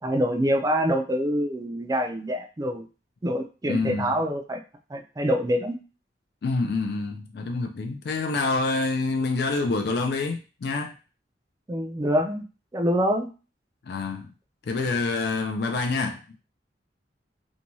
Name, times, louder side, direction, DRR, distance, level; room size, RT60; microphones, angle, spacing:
voice 1, 0.0-2.9 3.2-4.6 4.9-5.8 11.7-12.4 12.7-13.3, equal, 20° right, 0.4 m, -25 dB
voice 2, 3.7-4.1 6.4-11.0 13.8-14.3 14.6-16.2, left 3 dB, 65° left, 0.4 m, -27 dB
2.6 x 2.2 x 3.0 m
head